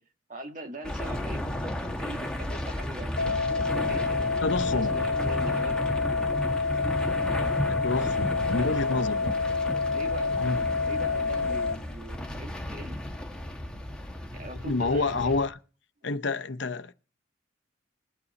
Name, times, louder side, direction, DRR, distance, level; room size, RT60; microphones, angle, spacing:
voice 1, 0.3-4.2 4.6-6.1 8.4-9.4 9.9-10.4 10.8-13.0 14.3-15.4, right 1 dB, 40° right, 1.7 m, -41 dB
sound 1, 0.8-15.5, left 1 dB, 5° left, 1.2 m, -33 dB
sound 2, 3.2-11.8, left 4 dB, 90° left, 1.2 m, -28 dB
voice 2, 4.4-4.9 7.6-9.2 10.4-10.6 14.6-15.6 16.0-16.9, left 3 dB, 65° left, 0.8 m, -28 dB
21.0 x 8.4 x 4.2 m
head